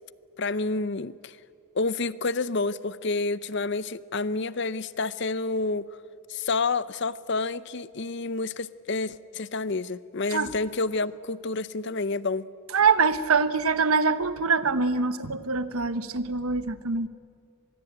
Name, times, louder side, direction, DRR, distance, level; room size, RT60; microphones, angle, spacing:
voice 1, 0.4-1.4 1.8-5.9 6.3-12.5, left 3 dB, 50° left, 17 dB, 0.6 m, -29 dB
voice 2, 12.7-17.1, right 5 dB, 80° right, 13 dB, 1.1 m, -24 dB
25.0 x 21.5 x 8.8 m, 2.3 s
head